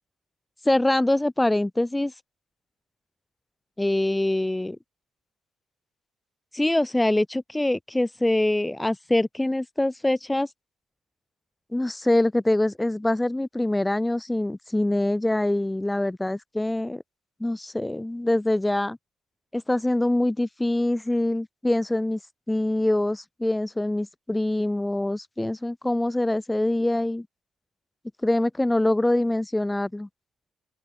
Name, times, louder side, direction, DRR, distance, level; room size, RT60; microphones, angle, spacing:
voice 1, 0.6-2.1 3.8-4.8 6.5-10.5 11.7-17.0 17.4-19.0 19.5-22.2 22.5-27.3 28.2-30.1, left 1 dB, 10° left, 7.4 m, -24 dB
open air
cardioid pair, 90°, 0 cm